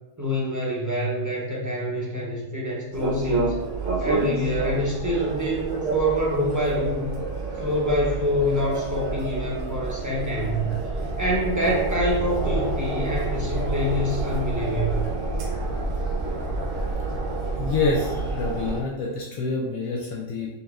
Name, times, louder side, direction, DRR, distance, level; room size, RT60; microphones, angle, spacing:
voice 1, 0.2-3.5 4.0-7.1 7.6-10.7 11.2-15.1, left 1 dB, 15° right, -5 dB, 0.7 m, -26 dB
sound 1, 2.9-18.8, right 3 dB, 60° right, 1.1 m, -28 dB
voice 2, 17.6-20.5, left 3 dB, 75° left, -3 dB, 1.1 m, -27 dB
5.2 x 3.4 x 2.4 m, 0.99 s
omnidirectional pair, 1.5 m